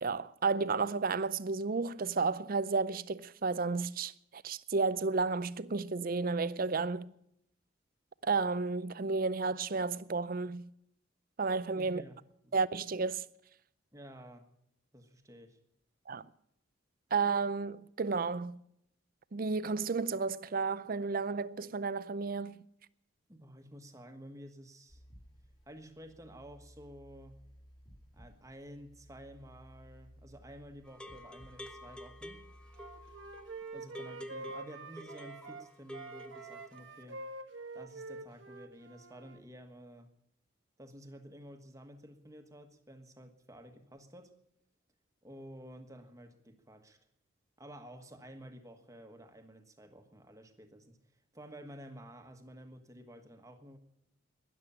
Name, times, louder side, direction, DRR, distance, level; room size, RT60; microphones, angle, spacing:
voice 1, 0.0-7.1 8.2-10.7 11.4-12.0 12.5-13.2 16.1-16.3 17.1-18.6 19.3-22.6, right 4 dB, 45° right, 0.5 m, -32 dB
voice 2, 11.8-12.5 13.9-14.5 14.9-15.6 23.3-25.0 25.7-27.4 28.1-32.4 33.7-37.2 37.7-40.1 40.8-44.3 45.2-47.0 47.6-53.8, equal, 15° right, 1.4 m, -52 dB
sound 1, 24.9-33.6, equal, 20° left, 3.2 m, -58 dB
sound 2, 30.8-36.8, equal, 5° left, 0.8 m, -49 dB
Wind instrument woodwind instrument, 32.8-35.7 35.9-39.4, right 3 dB, 65° right, 1.2 m, -46 dB
13.0 x 11.0 x 9.9 m
head